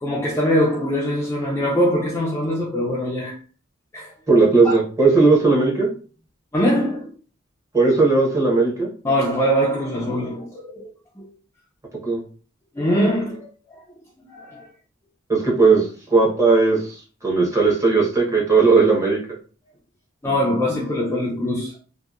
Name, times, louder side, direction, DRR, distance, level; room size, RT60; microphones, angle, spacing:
voice 1, 0.0-3.4 3.9-4.1 4.6-4.7 6.5-7.1 9.0-10.8 11.2-11.3 12.8-13.8 14.2-14.7 20.2-21.8, equal, 15° left, 0.4 m, -22 dB
voice 2, 4.3-5.9 7.7-8.9 12.0-12.2 15.3-19.2, right 3 dB, 15° right, 0.9 m, -17 dB
2.8 x 2.1 x 2.3 m
head